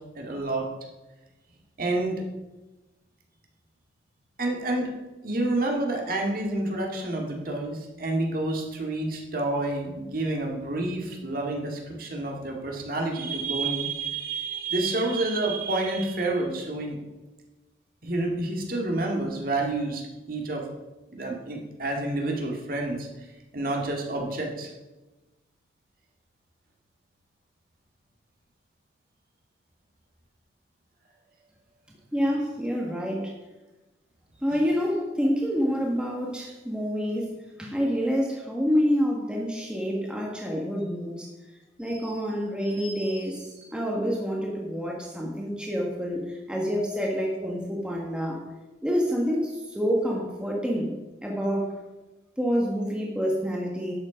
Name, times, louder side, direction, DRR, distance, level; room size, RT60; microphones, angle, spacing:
voice 1, 0.2-0.7 1.8-2.2 4.4-4.9 5.2-17.0 18.0-20.7 21.1-23.1 23.5-24.7 47.4-47.5, right 2 dB, 50° right, 0 dB, 2.1 m, -29 dB
voice 2, 32.1-33.3 34.4-37.3 37.6-41.3 41.8-48.5 48.8-50.9 51.2-51.8 52.4-53.9, equal, 5° right, -2 dB, 1.5 m, -27 dB
11.5 x 8.7 x 5.1 m, 1.1 s
head